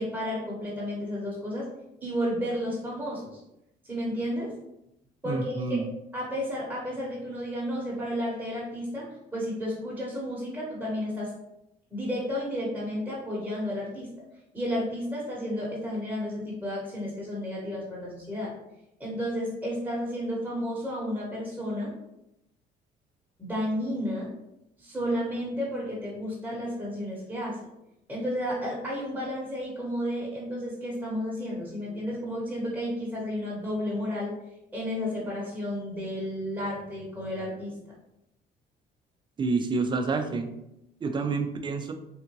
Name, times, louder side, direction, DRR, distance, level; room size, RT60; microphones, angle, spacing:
voice 1, 0.0-1.7 2.0-3.4 3.8-4.5 5.2-5.8 6.1-11.3 11.9-14.1 14.5-18.5 19.0-21.9 23.4-24.3 24.8-27.7 28.1-34.3 34.7-37.7, equal, 10° right, -6 dB, 1.2 m, -32 dB
voice 2, 5.2-5.8 39.4-40.5 41.0-41.9, right 4 dB, 30° right, 6 dB, 0.4 m, -28 dB
3.6 x 2.4 x 3.0 m, 0.85 s
cardioid pair, 110°, 17 cm